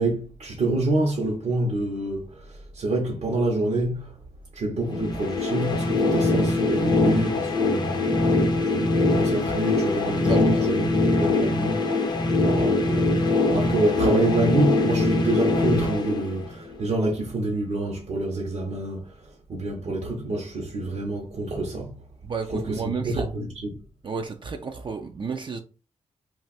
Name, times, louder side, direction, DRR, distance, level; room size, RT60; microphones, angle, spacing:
voice 1, 0.0-4.1 4.5-11.8 12.3-13.2 13.5-19.1 19.5-22.0 22.5-23.7, right 2 dB, 65° right, 0.9 m, -27 dB
sound 1, 4.9-16.8, left 2 dB, 35° left, 0.6 m, -22 dB
voice 2, 10.1-10.7 22.2-23.3 24.0-25.6, right 5 dB, 45° right, 0.4 m, -32 dB
2.5 x 2.4 x 4.0 m
cardioid pair, 60°, 12 cm